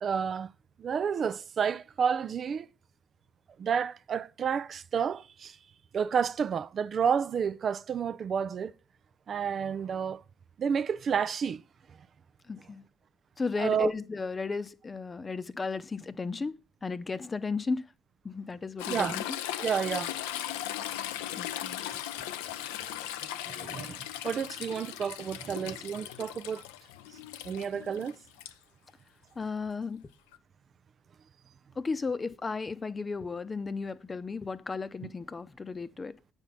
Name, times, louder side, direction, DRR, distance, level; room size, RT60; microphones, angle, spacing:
voice 1, 0.0-0.5 0.8-2.7 3.6-5.6 5.9-8.7 9.3-10.2 10.6-11.6 13.6-13.9 18.9-19.2 19.6-20.1 23.5-26.6 27.4-28.2, right 7 dB, 50° right, 0.4 m, -30 dB
voice 2, 12.5-12.8 13.4-16.5 16.8-17.8 18.2-19.2 21.4-21.8 29.4-30.0 31.8-36.1, left 4 dB, 30° left, 0.8 m, -34 dB
Toilet flush / Trickle dribble, 18.8-28.5 30.3-30.4, left 12 dB, 80° left, 0.5 m, -38 dB
9.1 x 5.4 x 5.7 m
hypercardioid pair, 55°, 0 cm